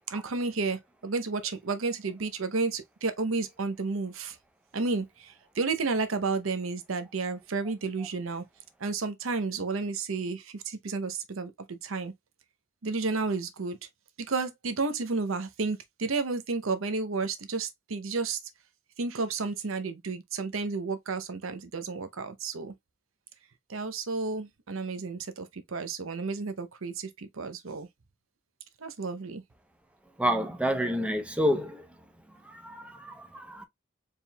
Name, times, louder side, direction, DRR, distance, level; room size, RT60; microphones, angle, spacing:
voice 1, 0.1-4.4 4.7-8.4 8.8-12.1 12.8-13.8 14.3-18.4 19.0-22.7 23.7-27.9 28.8-29.4, right 4 dB, 85° right, 0.7 m, -32 dB
voice 2, 30.2-31.8 32.4-33.6, equal, 5° right, 0.7 m, -29 dB
4.5 x 3.6 x 2.2 m
head